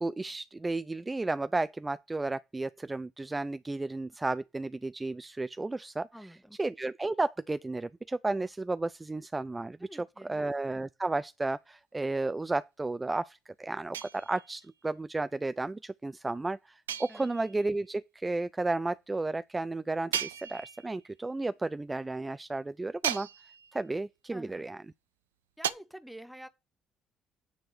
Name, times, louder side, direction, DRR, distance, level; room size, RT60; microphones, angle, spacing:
voice 1, 0.0-6.1 6.6-9.8 10.3-23.3 23.7-24.8, right 2 dB, 20° right, 0.4 m, -33 dB
voice 2, 6.1-6.6 9.8-10.4 17.1-17.3 24.3-24.7 25.6-26.5, equal, ahead, 1.3 m, -48 dB
sound 1, 13.9-14.7 16.9-17.7 20.1-21.0 23.0-23.8 25.6-25.7, right 9 dB, 90° right, 0.4 m, -36 dB
9.3 x 3.7 x 6.4 m
hypercardioid pair, 50°, 0 cm